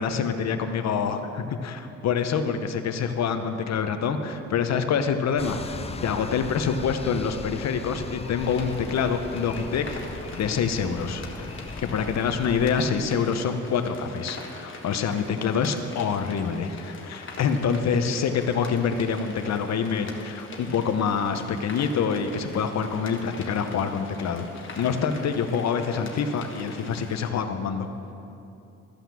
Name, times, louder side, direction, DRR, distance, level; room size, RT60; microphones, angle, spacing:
voice 1, 0.0-11.5 11.8-24.5 24.8-27.9, left 6 dB, 60° left, 8 dB, 0.9 m, -26 dB
sound 1, 5.4-12.9, left 4 dB, 20° left, 0.6 m, -38 dB
sound 2, 8.4-27.3, left 3 dB, 40° left, 1.5 m, -43 dB
13.5 x 5.8 x 7.4 m, 2.8 s
cardioid pair, 90°, 30 cm